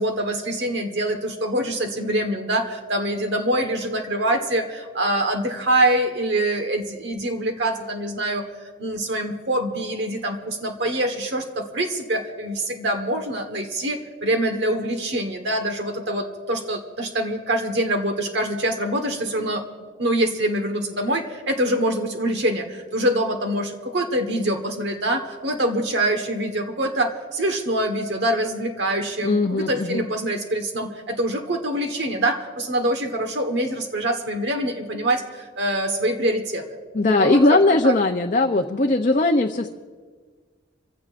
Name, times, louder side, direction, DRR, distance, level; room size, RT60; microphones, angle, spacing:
voice 1, 0.0-8.4 8.8-19.6 20.0-36.6 37.0-37.6 37.8-37.9, right 1 dB, 60° right, 5 dB, 1.4 m, -25 dB
voice 2, 29.2-30.0 36.9-39.7, left 2 dB, 40° left, 3 dB, 0.6 m, -19 dB
26.0 x 16.0 x 2.5 m, 1.5 s
head